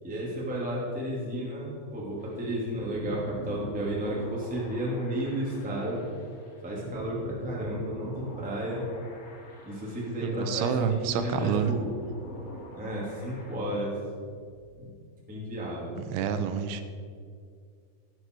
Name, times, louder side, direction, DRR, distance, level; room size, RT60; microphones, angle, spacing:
voice 1, 0.0-6.0 6.6-8.9 9.6-11.9 12.7-14.0 14.8-14.9 15.3-16.0, right 1 dB, 5° right, -5 dB, 1.1 m, -32 dB
sound 1, 2.2-13.5, left 1 dB, 90° left, 1.4 m, -43 dB
voice 2, 10.2-11.7 15.9-16.8, right 7 dB, 80° right, 9 dB, 2.9 m, -28 dB
16.0 x 8.0 x 4.7 m, 2.2 s
omnidirectional pair, 5.7 m